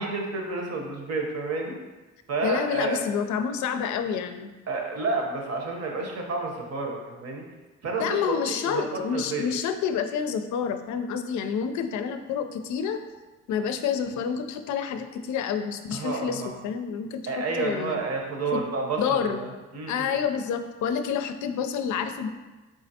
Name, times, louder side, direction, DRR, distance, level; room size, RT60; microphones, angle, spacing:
voice 1, 0.0-1.7 2.3-3.0 4.7-7.4 7.8-9.5 15.9-16.5 17.3-20.2, right 3 dB, 55° right, 1 dB, 0.9 m, -30 dB
voice 2, 2.4-4.5 8.0-13.0 13.5-18.0 18.5-18.6 19.0-19.4 19.9-22.3, left 7 dB, 75° left, 8 dB, 0.4 m, -28 dB
4.0 x 3.8 x 2.8 m, 1.2 s
cardioid pair, 90°, 30 cm